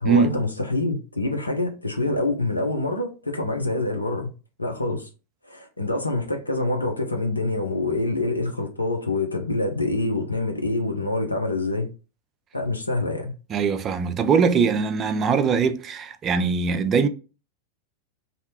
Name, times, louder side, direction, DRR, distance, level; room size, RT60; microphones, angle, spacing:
voice 1, 0.0-4.3 4.6-5.1 5.5-11.9 12.5-13.3, left 2 dB, 85° left, 0.5 m, -26 dB
voice 2, 13.5-17.1, right 5 dB, 25° right, 0.3 m, -21 dB
2.7 x 2.2 x 2.7 m
figure-of-eight pair, 90°, 0 cm